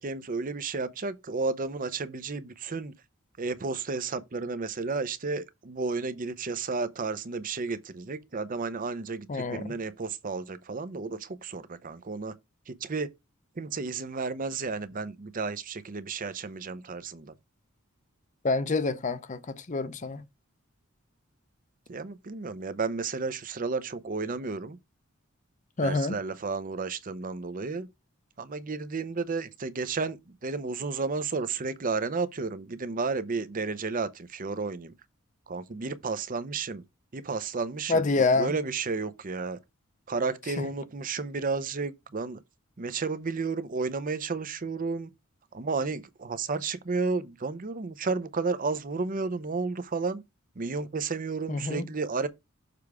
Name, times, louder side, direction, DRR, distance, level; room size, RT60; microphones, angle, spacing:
voice 1, 0.0-2.9 3.4-12.4 12.7-13.1 13.6-17.3 21.9-24.8 25.8-27.9 28.4-34.9 35.5-36.8 37.1-39.6 40.1-42.4 42.8-45.1 45.5-50.2 50.6-52.3, right 4 dB, 40° right, 0.6 m, -32 dB
voice 2, 9.3-9.6 18.4-20.2 25.8-26.2 37.9-38.5 51.5-51.8, left 3 dB, 35° left, 0.6 m, -27 dB
6.8 x 3.5 x 4.8 m
head